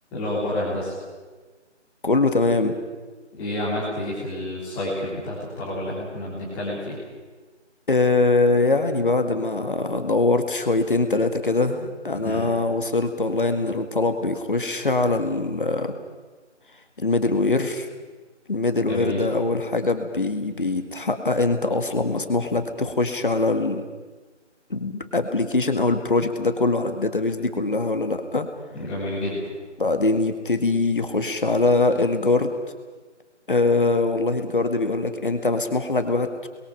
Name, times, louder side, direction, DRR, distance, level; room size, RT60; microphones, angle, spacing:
voice 1, 0.1-1.0 3.4-7.0 12.1-12.5 18.8-19.2 28.7-29.5, left 1 dB, 5° left, -8 dB, 3.3 m, -29 dB
voice 2, 2.0-2.8 7.9-15.9 17.0-17.9 18.5-23.8 24.7-28.5 29.8-32.5 33.5-36.5, left 3 dB, 45° left, 7 dB, 1.9 m, -22 dB
28.5 x 22.0 x 5.1 m, 1.3 s
figure-of-eight pair, 165°, 36 cm